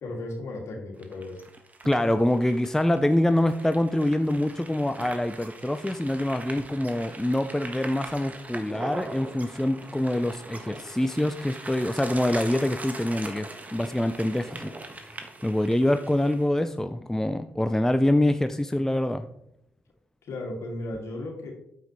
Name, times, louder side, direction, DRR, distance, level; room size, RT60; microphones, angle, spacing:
voice 1, 0.0-1.4 20.2-21.5, left 2 dB, 55° left, 0 dB, 2.5 m, -35 dB
sound 1, 1.0-16.4, right 2 dB, 25° right, 1.5 m, -41 dB
voice 2, 1.8-14.7 15.4-19.3, left 1 dB, 5° left, 9 dB, 0.5 m, -25 dB
sound 2, 1.8-2.1 3.4-3.6 5.0-5.4 6.6-6.9 8.0-8.3, right 5 dB, 70° right, 1.5 m, -49 dB
9.1 x 7.3 x 3.2 m, 0.77 s
figure-of-eight pair, 40°, 6 cm